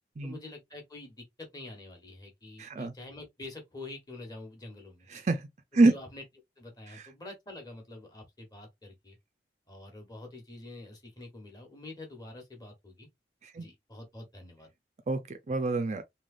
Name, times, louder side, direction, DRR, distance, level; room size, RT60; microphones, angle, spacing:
voice 1, 0.2-5.1 5.7-6.2 6.6-9.2 9.7-13.1 13.6-14.7, left 2 dB, 20° left, 1.1 m, -46 dB
voice 2, 2.6-2.9 5.1-5.5 5.7-5.9 6.9-7.0 13.4-13.7 15.1-16.0, right 2 dB, 40° right, 0.4 m, -26 dB
3.2 x 2.9 x 2.4 m
head